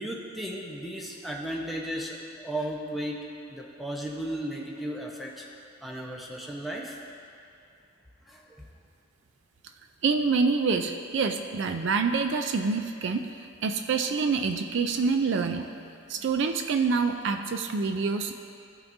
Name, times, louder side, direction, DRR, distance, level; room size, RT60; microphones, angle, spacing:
voice 1, 0.0-3.2 3.5-5.4 5.8-7.0 8.3-8.7, right 1 dB, ahead, -3 dB, 0.8 m, -35 dB
voice 2, 10.0-13.3 13.6-15.7 16.1-18.4, right 4 dB, 60° right, 6 dB, 0.4 m, -26 dB
15.0 x 5.9 x 2.6 m, 2.4 s
head